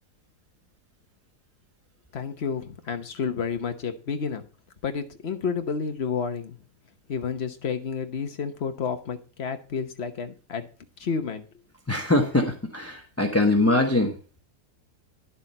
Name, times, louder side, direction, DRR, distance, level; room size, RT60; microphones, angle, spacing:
voice 1, 2.1-4.4 4.8-6.6 7.1-10.7 11.0-11.4, left 6 dB, 45° left, 7 dB, 1.2 m, -30 dB
voice 2, 11.9-14.1, left 2 dB, 10° left, 3 dB, 0.8 m, -22 dB
11.0 x 6.9 x 4.2 m, 0.38 s
omnidirectional pair, 1.6 m